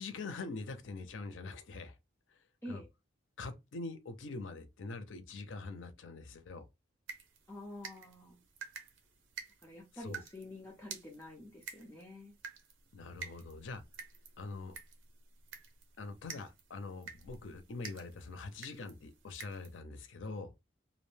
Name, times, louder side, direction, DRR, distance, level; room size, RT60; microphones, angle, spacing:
voice 1, 0.0-2.0 2.7-2.8 3.4-6.6 10.0-10.2 12.9-13.8 14.4-14.8 16.0-20.5, left 3 dB, 80° left, 0.5 m, -44 dB
sound 1, 7.1-19.8, right 6 dB, 80° right, 0.6 m, -51 dB
voice 2, 7.5-8.4 9.6-12.3, left 1 dB, 10° left, 0.5 m, -48 dB
2.5 x 2.1 x 3.1 m
head